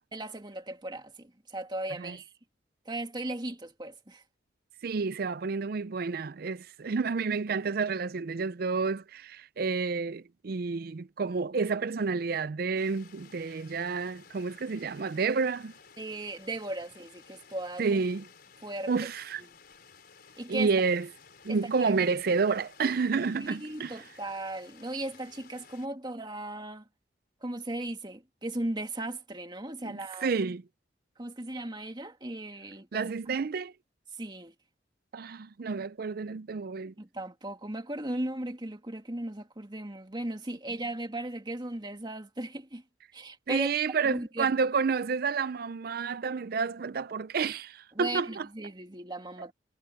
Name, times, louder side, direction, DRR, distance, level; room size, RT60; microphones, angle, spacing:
voice 1, 0.1-2.3 2.9-4.2 16.0-18.0 18.6-18.9 20.4-20.7 21.5-21.9 23.4-26.8 27.4-30.3 31.2-33.0 34.2-34.5 37.0-42.8 43.1-43.7 44.0-44.5 47.9-49.5, right 1 dB, 25° right, 2.2 m, -37 dB
voice 2, 4.8-15.7 17.8-18.3 18.9-19.4 20.5-21.1 21.4-24.0 29.8-30.7 32.9-33.7 35.1-36.9 43.5-48.5 49.4-49.5, right 5 dB, 50° right, 0.5 m, -30 dB
sound 1, 12.8-25.9, left 6 dB, 55° left, 4.9 m, -55 dB
head